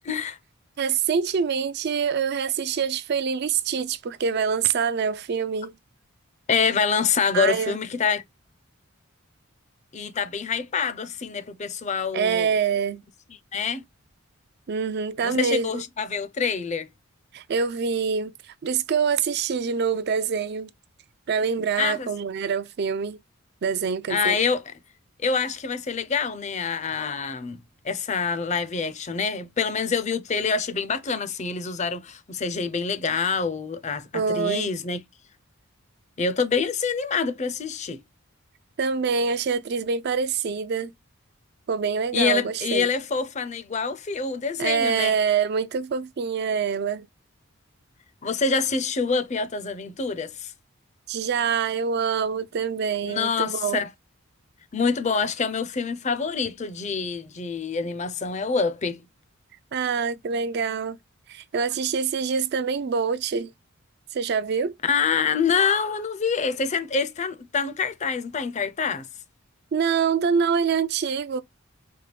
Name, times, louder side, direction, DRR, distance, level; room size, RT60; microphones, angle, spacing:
voice 1, 0.0-0.4 6.5-8.2 9.9-12.5 13.5-13.8 15.2-16.9 21.8-22.1 24.1-24.6 25.2-35.0 36.2-38.0 42.1-45.1 48.2-50.5 53.0-53.9 54.7-59.0 64.8-69.1, left 5 dB, 35° left, 0.5 m, -26 dB
voice 2, 0.8-5.7 7.3-7.8 12.1-13.0 14.7-15.8 17.3-20.7 21.3-23.2 23.6-24.4 34.1-34.7 38.8-40.9 41.7-42.9 44.6-47.1 51.1-53.8 59.7-61.0 61.3-63.5 64.1-64.7 69.7-71.4, right 6 dB, 50° right, 0.4 m, -25 dB
4.5 x 2.2 x 3.2 m
head